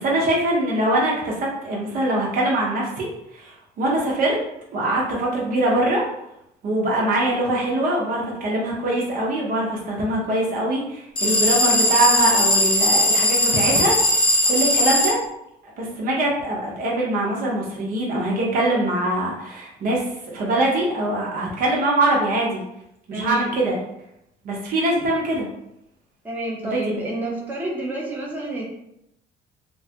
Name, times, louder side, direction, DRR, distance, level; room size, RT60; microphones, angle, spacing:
voice 1, 0.0-3.1 3.3-4.4 4.7-6.0 6.6-15.2 15.8-22.6 23.1-23.8 24.4-25.5 26.6-27.0, right 1 dB, 55° right, -3 dB, 0.9 m, -23 dB
sound 1, 11.2-15.1, left 1 dB, 25° left, 0.8 m, -19 dB
voice 2, 23.1-23.5 26.2-28.7, right 1 dB, 10° right, -4 dB, 0.8 m, -29 dB
3.0 x 2.2 x 2.8 m, 0.81 s
cardioid pair, 110°, 17 cm